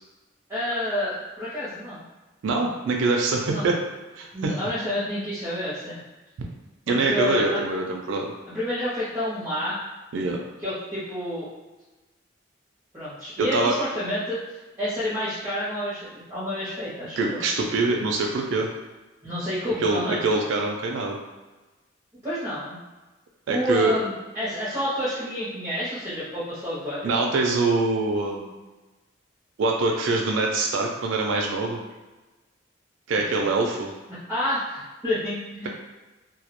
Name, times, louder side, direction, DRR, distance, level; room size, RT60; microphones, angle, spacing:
voice 1, 0.5-2.0 3.4-3.7 4.3-6.0 6.9-7.6 8.5-9.8 10.6-11.5 12.9-17.4 19.2-20.3 22.2-22.8 23.5-27.1 33.4-33.5 34.3-35.7, left 1 dB, 15° right, -11 dB, 0.5 m, -29 dB
voice 2, 2.4-3.7 4.2-4.3 6.9-8.3 10.1-10.4 13.4-13.7 17.2-18.7 19.8-21.2 23.5-23.9 27.0-28.5 29.6-31.8 33.1-33.9, right 3 dB, 75° right, 1 dB, 0.3 m, -24 dB
2.2 x 2.0 x 2.9 m, 1.2 s
head